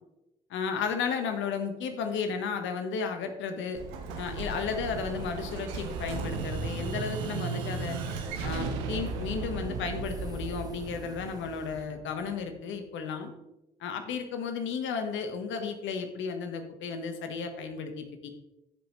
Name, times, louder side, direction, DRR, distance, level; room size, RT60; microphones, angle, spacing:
voice 1, 0.5-3.8 4.1-8.0 8.4-13.3 13.8-18.3, left 5 dB, 75° left, 6 dB, 1.3 m, -33 dB
Explosion, 3.8-12.4, right 4 dB, 90° right, 1.0 m, -35 dB
sound 1, 4.1-11.9, right 2 dB, 20° right, 2.2 m, -54 dB
14.0 x 5.4 x 3.2 m, 0.94 s
supercardioid pair, 55°, 20 cm